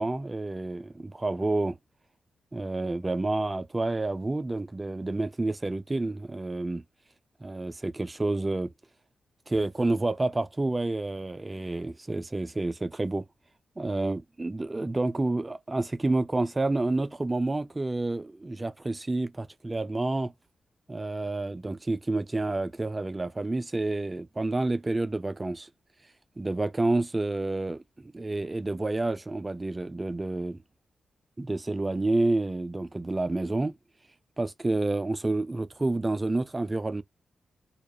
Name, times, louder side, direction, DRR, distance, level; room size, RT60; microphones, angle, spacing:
voice 1, 0.0-1.8 2.5-6.8 7.4-8.7 9.5-13.2 13.8-20.3 20.9-25.7 26.4-30.6 31.4-33.8 34.4-37.0, right 2 dB, 25° right, 0.3 m, -29 dB
2.2 x 2.0 x 2.8 m
cardioid pair, 55°, 0 cm